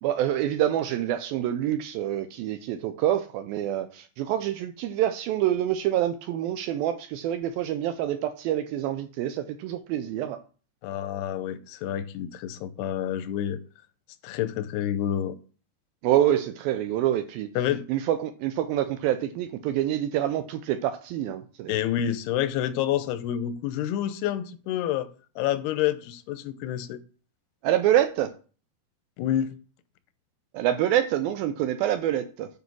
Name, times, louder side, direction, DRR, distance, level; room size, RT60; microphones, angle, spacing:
voice 1, 0.0-10.4 16.0-17.5 17.9-21.8 27.6-28.3 30.5-32.5, right 12 dB, 85° right, 2.2 m, -26 dB
voice 2, 10.8-13.6 14.2-15.4 17.6-17.8 21.7-25.1 25.4-27.0 29.2-29.5, left 11 dB, 85° left, 2.6 m, -28 dB
9.3 x 5.2 x 6.1 m
omnidirectional pair, 4.7 m